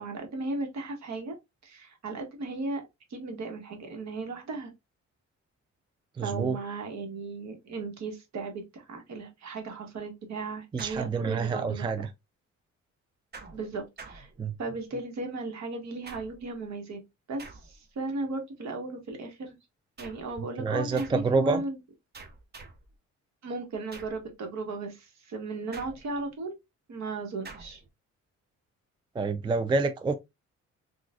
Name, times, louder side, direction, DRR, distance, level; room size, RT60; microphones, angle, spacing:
voice 1, 0.0-1.4 1.6-2.8 3.1-4.7 6.2-12.1 13.5-14.3 14.6-17.0 17.3-19.6 20.0-21.8 23.4-26.6 26.9-27.8, right 3 dB, 65° right, 1.3 m, -36 dB
voice 2, 6.2-6.6 10.7-12.1 14.4-14.5 20.4-21.6 29.1-30.1, right 4 dB, 15° right, 0.3 m, -28 dB
sound 1, 10.8-11.6 13.3-14.9 16.1-16.6 17.4-18.0 20.0-20.4 21.0-21.4 22.1-23.0 23.9-24.3 25.7-26.4 27.5-27.9, right 3 dB, 35° right, 0.7 m, -48 dB
3.9 x 2.4 x 2.3 m
cardioid pair, 90°, 30 cm